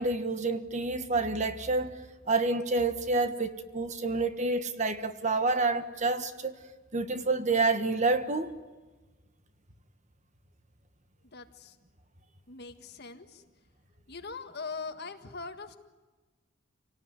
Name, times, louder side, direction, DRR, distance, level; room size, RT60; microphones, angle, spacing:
voice 1, 0.0-2.0 2.3-6.6 6.9-8.5, right 3 dB, 35° right, 1.4 m, -28 dB
voice 2, 11.3-11.8 12.5-13.4 14.1-15.8, left 4 dB, 55° left, 1.7 m, -41 dB
28.0 x 18.5 x 9.7 m
head